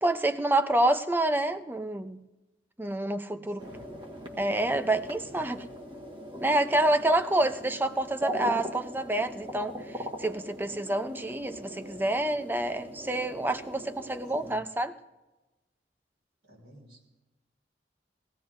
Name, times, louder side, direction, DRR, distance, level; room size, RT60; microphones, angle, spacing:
voice 1, 0.0-2.2 2.8-3.6 4.4-5.6 6.4-14.9, right 1 dB, 10° right, 8 dB, 0.6 m, -28 dB
voice 2, 3.3-3.9 5.3-5.6 14.4-14.7 16.4-17.0, equal, 85° right, -3 dB, 5.9 m, -53 dB
sound 1, 3.6-14.6, equal, 30° right, 1.5 m, -40 dB
21.0 x 16.5 x 2.7 m, 1.1 s
head